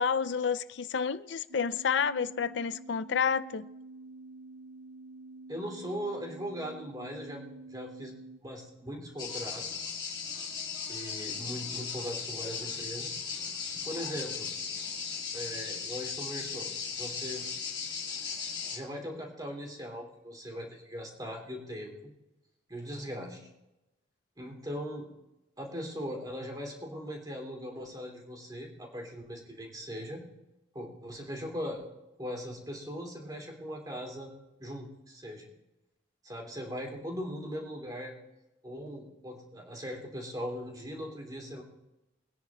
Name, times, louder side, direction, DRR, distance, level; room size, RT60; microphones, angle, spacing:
voice 1, 0.0-3.7, left 6 dB, 65° left, 0.5 m, -30 dB
sound 1, 1.5-8.4, right 3 dB, 80° right, 0.6 m, -48 dB
voice 2, 5.5-9.9 10.9-13.2 13.8-14.5 15.3-17.4 18.7-22.1 22.7-23.5 24.4-25.1 25.6-30.2 30.7-31.9 32.2-34.3 34.6-35.5 36.2-38.1 38.6-41.6, equal, 20° right, 3.1 m, -40 dB
sound 2, 9.2-18.8, left 5 dB, 25° left, 2.3 m, -37 dB
23.0 x 10.0 x 3.0 m
head